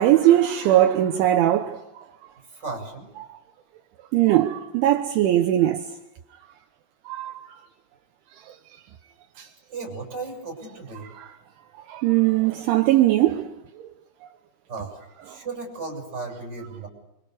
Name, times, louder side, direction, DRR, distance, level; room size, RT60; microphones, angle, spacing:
voice 1, 0.0-1.8 4.1-5.9 7.1-7.4 9.4-9.5 11.2-11.3 11.9-13.5, right 13 dB, 75° right, 3.3 m, -20 dB
voice 2, 2.5-3.1 9.7-11.1 14.7-16.9, right 3 dB, 20° right, 8.0 m, -35 dB
29.5 x 26.0 x 6.8 m
omnidirectional pair, 5.9 m